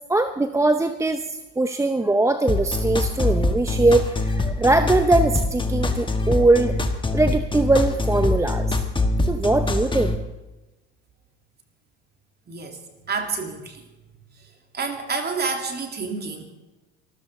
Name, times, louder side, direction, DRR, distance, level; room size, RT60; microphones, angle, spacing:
voice 1, 0.1-6.8 7.1-8.8 9.3-10.2, right 2 dB, 10° right, 9 dB, 0.7 m, -21 dB
sound 1, 2.5-10.2, left 2 dB, 15° left, 1.6 m, -24 dB
voice 2, 12.5-12.8 13.1-13.8 14.4-14.5 14.7-16.4, right 4 dB, 30° right, 3 dB, 3.3 m, -29 dB
24.5 x 14.0 x 3.8 m, 1.1 s
hypercardioid pair, 75°, 35 cm